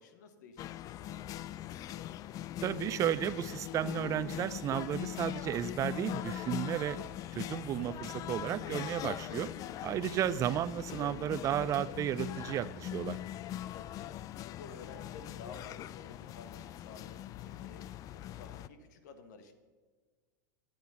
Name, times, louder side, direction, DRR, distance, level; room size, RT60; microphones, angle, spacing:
voice 1, 0.0-1.6 9.6-10.1 13.6-14.2 14.5-19.5, left 4 dB, 65° left, 8 dB, 1.5 m, -53 dB
sound 1, 0.6-18.7, left 12 dB, 35° left, 0.4 m, -41 dB
voice 2, 2.6-7.0 7.3-9.5 9.8-13.2, right 11 dB, 30° right, 17 dB, 0.4 m, -33 dB
9.3 x 9.2 x 5.6 m, 1.5 s
hypercardioid pair, 105°, 10 cm